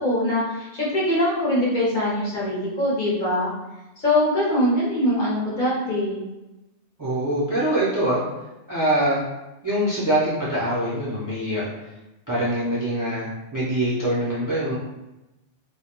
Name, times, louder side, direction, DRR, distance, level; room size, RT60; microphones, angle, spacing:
voice 1, 0.0-3.5 4.0-6.2, left 1 dB, 50° left, -6 dB, 0.7 m, -22 dB
voice 2, 7.0-8.2 8.7-9.2 9.6-11.7 12.3-14.8, right 1 dB, 30° right, -9 dB, 0.4 m, -24 dB
2.2 x 2.1 x 2.8 m, 1.0 s
omnidirectional pair, 1.2 m